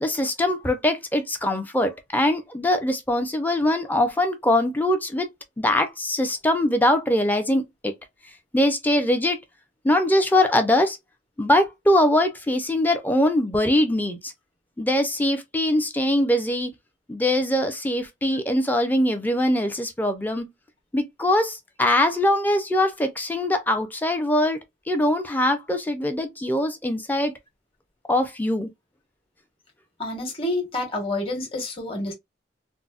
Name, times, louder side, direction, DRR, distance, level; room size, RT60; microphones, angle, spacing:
voice 1, 0.0-5.3 5.6-7.9 8.5-9.4 9.8-11.0 11.4-14.3 14.8-16.7 17.1-20.5 20.9-24.6 24.9-27.3 28.1-28.7, left 1 dB, 10° left, 0.5 m, -22 dB
voice 2, 30.0-32.1, left 2 dB, 30° left, 1.2 m, -28 dB
3.8 x 2.0 x 2.3 m
head